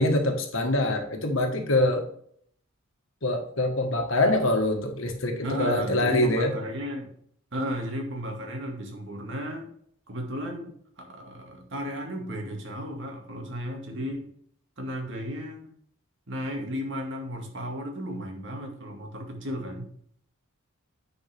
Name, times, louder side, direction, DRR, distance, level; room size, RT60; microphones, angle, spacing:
voice 1, 0.0-2.1 3.2-6.5, left 1 dB, 65° left, 4 dB, 1.6 m, -24 dB
voice 2, 5.4-7.1 7.5-9.7 10.1-14.3 14.8-15.7 16.3-19.9, equal, 60° right, 2 dB, 2.1 m, -34 dB
9.2 x 5.6 x 3.5 m, 0.62 s
head